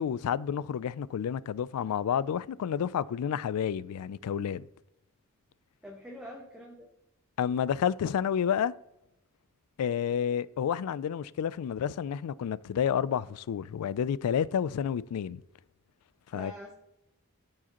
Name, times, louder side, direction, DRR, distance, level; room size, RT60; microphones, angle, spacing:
voice 1, 0.0-4.7 7.4-8.7 9.8-15.4 16.3-16.5, left 8 dB, 85° left, 0.3 m, -30 dB
voice 2, 5.8-6.9 16.3-16.7, equal, 5° right, 0.9 m, -45 dB
13.5 x 4.8 x 3.0 m
head